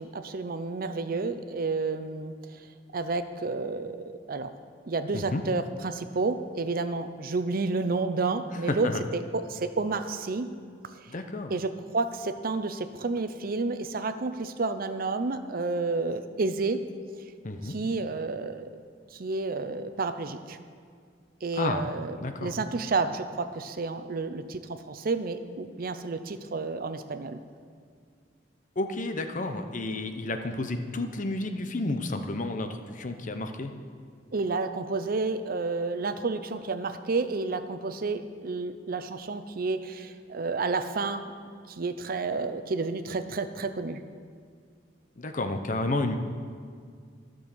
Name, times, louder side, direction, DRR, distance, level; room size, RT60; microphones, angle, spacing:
voice 1, 0.0-2.3 2.9-4.0 4.3-4.5 4.9-8.9 9.1-10.5 11.5-16.8 17.6-18.7 19.1-20.6 21.4-27.4 34.3-41.3 41.7-44.0, right 3 dB, 55° right, 10 dB, 0.6 m, -30 dB
voice 2, 8.7-9.0 11.1-11.5 17.4-17.7 21.6-21.9 22.2-22.5 28.8-33.7 45.2-46.2, left 2 dB, 45° left, 7 dB, 0.8 m, -31 dB
13.0 x 6.3 x 7.1 m, 2.1 s
head